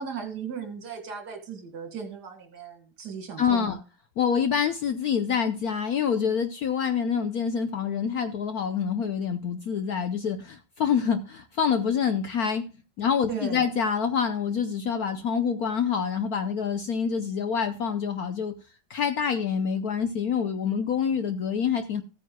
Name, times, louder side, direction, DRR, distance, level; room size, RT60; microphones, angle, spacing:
voice 1, 0.0-3.8 13.3-13.7, right 6 dB, 50° right, 2.4 m, -36 dB
voice 2, 3.4-3.8 4.2-12.7 13.0-18.5 18.9-22.0, left 7 dB, 65° left, 0.9 m, -26 dB
15.5 x 9.2 x 2.2 m
omnidirectional pair, 2.3 m